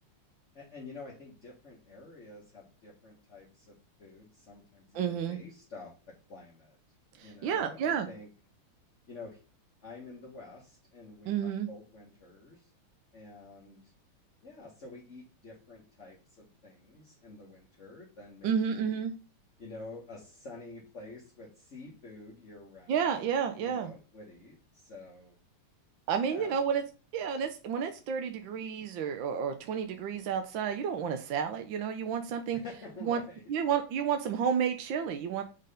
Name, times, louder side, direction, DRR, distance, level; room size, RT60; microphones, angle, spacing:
voice 1, 0.5-6.8 7.2-8.3 9.1-9.4 9.8-12.7 13.1-13.9 14.4-19.0 19.6-23.2 23.6-25.3 26.2-26.6 32.5-33.4, left 3 dB, 35° left, -4 dB, 1.8 m, -49 dB
voice 2, 4.9-5.4 7.2-8.1 11.3-11.7 18.4-19.1 22.9-23.9 26.1-26.8 27.1-32.6 33.0-33.2 33.5-35.4, right 7 dB, 70° right, 6 dB, 1.4 m, -31 dB
5.5 x 3.9 x 5.0 m, 0.33 s
omnidirectional pair, 2.4 m